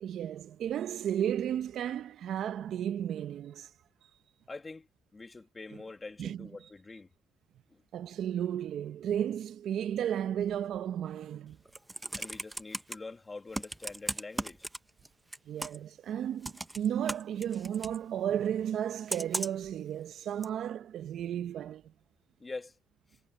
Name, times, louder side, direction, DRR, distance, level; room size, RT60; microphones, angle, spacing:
voice 1, 0.0-3.7 6.2-6.5 7.9-11.6 15.5-21.9, right 10 dB, 70° right, 0.8 m, -33 dB
voice 2, 4.5-4.9 5.1-7.1 7.7-7.8 11.7-11.8 12.2-14.7 22.4-22.7, left 3 dB, 25° left, 2.2 m, -45 dB
Computer keyboard, 11.5-12.9 13.5-15.1 15.3-15.9 16.4-18.0 19.1-19.7 20.4-20.5, right 1 dB, 10° right, 1.0 m, -36 dB
cardioid pair, 90°, 0 cm